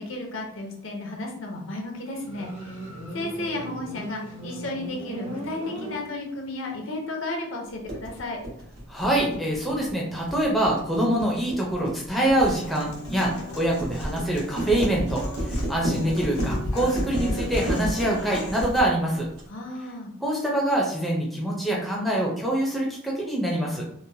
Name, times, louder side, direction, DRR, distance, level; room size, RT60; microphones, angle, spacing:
voice 1, 0.0-2.9 3.1-8.4 19.5-20.1, left 2 dB, 65° left, 1 dB, 0.6 m, -33 dB
Motorcycle, 2.2-6.6, equal, 65° right, 0.8 m, -38 dB
sound 1, 7.9-19.4, equal, 85° right, 1.1 m, -31 dB
voice 2, 8.9-19.3 20.2-23.8, right 1 dB, ahead, -3 dB, 0.4 m, -25 dB
Human voice / Acoustic guitar, 12.4-18.8, equal, 90° left, 0.8 m, -36 dB
2.9 x 2.0 x 2.6 m, 0.70 s
head